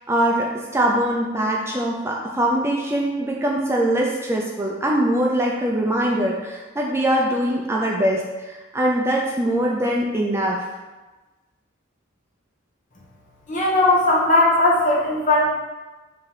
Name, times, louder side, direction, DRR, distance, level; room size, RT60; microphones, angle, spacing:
voice 1, 0.1-10.6, right 1 dB, 10° right, -2 dB, 0.5 m, -22 dB
voice 2, 13.5-15.5, left 2 dB, 40° left, -4 dB, 1.4 m, -18 dB
4.8 x 3.8 x 5.5 m, 1.2 s
head